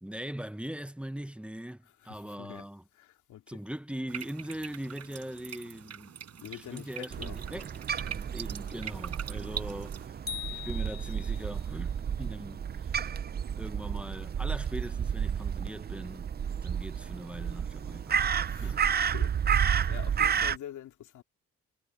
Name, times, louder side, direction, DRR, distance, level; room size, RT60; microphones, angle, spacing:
voice 1, 0.0-2.8 3.5-7.7 8.0-10.2 10.5-13.1 13.6-16.3 16.6-18.2 18.6-19.0 20.2-20.3, equal, 5° right, 0.9 m, -41 dB
voice 2, 2.0-2.7 2.9-3.6 6.4-7.4 18.5-18.7 19.0-21.2, left 11 dB, 75° left, 2.8 m, -45 dB
sound 1, 4.1-10.1, right 9 dB, 55° right, 5.3 m, -43 dB
Crow, 7.1-20.6, right 8 dB, 35° right, 0.6 m, -31 dB
sound 2, 10.3-11.7, left 8 dB, 30° left, 3.9 m, -41 dB
cardioid pair, 90°, 30 cm